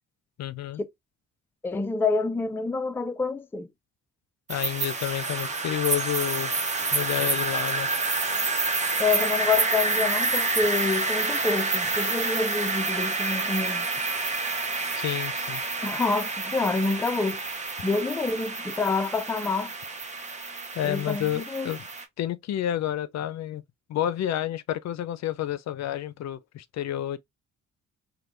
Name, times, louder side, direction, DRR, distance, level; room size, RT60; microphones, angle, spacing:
voice 1, 0.4-0.8 4.5-6.5 6.9-7.9 14.9-15.6 20.7-21.8 22.2-23.6 23.9-27.2, left 12 dB, 60° left, 0.5 m, -30 dB
voice 2, 1.6-3.7 9.0-13.9 15.8-17.4 17.8-19.7 20.8-21.7, left 4 dB, 5° left, 0.4 m, -27 dB
sound 1, 4.5-22.0, right 3 dB, 25° right, 0.9 m, -28 dB
3.2 x 2.2 x 2.9 m
cardioid pair, 90°, 30 cm